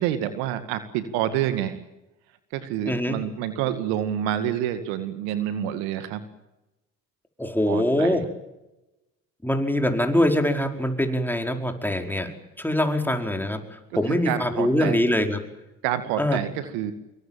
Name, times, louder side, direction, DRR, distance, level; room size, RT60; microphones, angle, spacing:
voice 1, 0.0-1.8 2.5-6.2 7.7-8.2 13.9-15.0 15.8-16.9, right 11 dB, 75° right, 11 dB, 2.1 m, -28 dB
voice 2, 2.8-3.2 7.4-8.3 9.4-12.3 12.6-13.6 13.9-15.4 16.2-16.4, left 1 dB, 5° left, 4 dB, 5.0 m, -23 dB
26.0 x 23.0 x 7.6 m, 0.97 s
hypercardioid pair, 55°, 38 cm